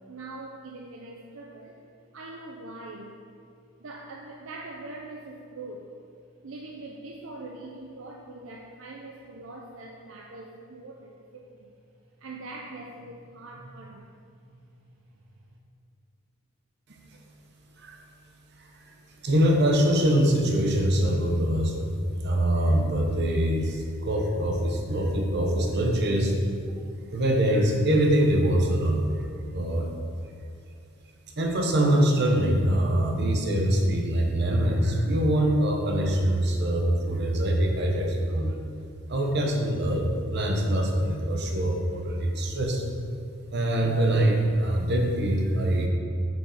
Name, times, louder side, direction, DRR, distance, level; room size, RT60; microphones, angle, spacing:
voice 1, 0.0-1.8 2.1-3.2 3.8-5.9 6.4-11.7 12.2-15.6, right 2 dB, 70° right, 0 dB, 0.6 m, -43 dB
voice 2, 18.6-18.9 19.2-22.0 22.2-26.3 27.1-29.9 31.4-38.6 39.1-42.8 43.5-45.9, right 1 dB, 55° right, 1 dB, 0.9 m, -24 dB
6.3 x 5.1 x 4.9 m, 2.3 s
head